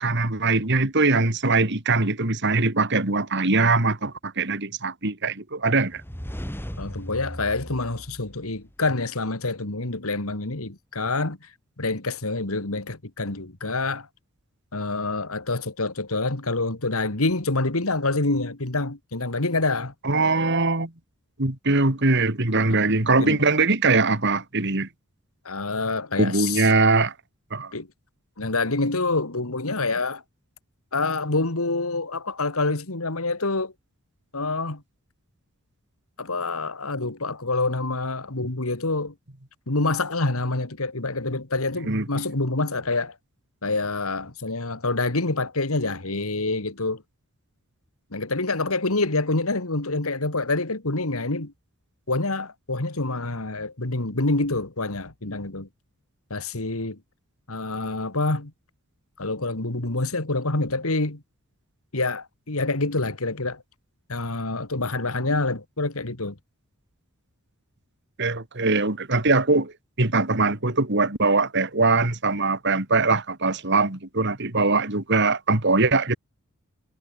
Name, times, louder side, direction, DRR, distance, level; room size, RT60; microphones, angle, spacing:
voice 1, 0.0-6.0 20.0-20.9 21.4-24.9 26.2-27.1 27.5-27.7 41.8-42.0 68.2-69.7 70.0-76.2, right 3 dB, 50° right, 2.6 m, -22 dB
sound 1, 5.9-8.9, equal, 10° left, 3.3 m, -37 dB
voice 2, 6.8-11.5 11.8-14.1 14.7-19.9 22.7-22.8 23.2-23.4 25.4-26.7 27.7-27.9 28.4-30.2 30.9-33.7 34.3-34.8 36.2-39.1 39.7-43.1 43.6-47.0 48.1-51.5 52.1-55.7 56.3-57.0 57.5-58.5 59.2-61.2 61.9-63.6 64.1-66.4, left 3 dB, 75° left, 2.3 m, -26 dB
head